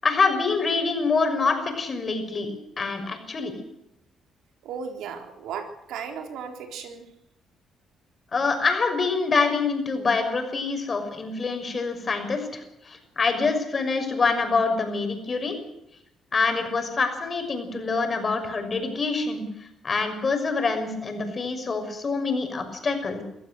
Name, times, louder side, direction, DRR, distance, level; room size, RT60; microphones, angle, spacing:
voice 1, 0.0-2.5 2.8-3.5 8.3-15.6 16.3-19.4 19.8-23.2, left 4 dB, 40° left, 6 dB, 6.1 m, -25 dB
voice 2, 4.6-7.1, right 6 dB, 85° right, 5 dB, 4.0 m, -36 dB
24.5 x 14.5 x 7.9 m, 0.82 s
cardioid pair, 90°, 0 cm